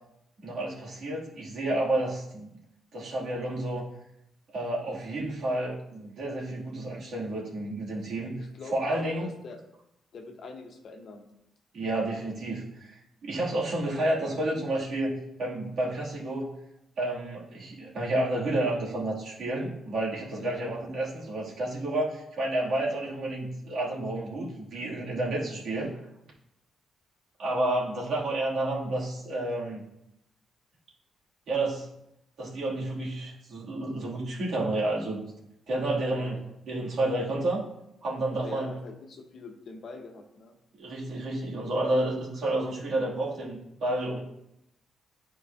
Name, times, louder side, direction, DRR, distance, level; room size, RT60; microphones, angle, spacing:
voice 1, 0.4-2.5 2.9-3.9 4.5-8.4 8.7-9.3 11.7-15.1 15.4-16.5 17.0-25.9 27.4-29.8 31.5-31.9 32.4-35.2 35.7-36.4 36.7-37.6 38.0-38.7 40.7-44.2, right 1 dB, 65° right, -5 dB, 2.4 m, -30 dB
voice 2, 8.4-9.6 10.1-11.3 20.4-20.6 36.1-36.4 38.4-40.6, left 3 dB, 55° left, 4 dB, 1.0 m, -43 dB
11.0 x 4.6 x 2.7 m, 0.82 s
cardioid pair, 110°, 0 cm